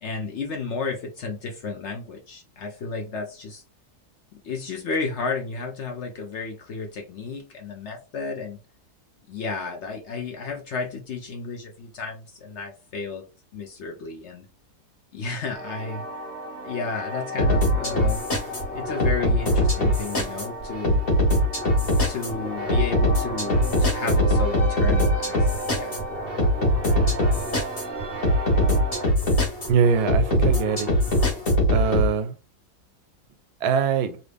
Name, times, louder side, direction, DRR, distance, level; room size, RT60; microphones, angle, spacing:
voice 1, 0.0-3.6 4.3-8.6 9.3-13.2 13.5-14.5 15.1-16.2 16.6-18.2 18.7-21.0 22.0-26.0, left 4 dB, 60° left, 0.8 m, -32 dB
sound 1, 15.5-29.1, right 1 dB, 30° right, 0.4 m, -34 dB
sound 2, 17.4-32.1, equal, 40° left, 1.5 m, -22 dB
voice 2, 29.7-30.9 31.7-32.3 33.6-34.1, right 6 dB, 80° right, 1.1 m, -22 dB
3.0 x 2.6 x 3.3 m
omnidirectional pair, 1.6 m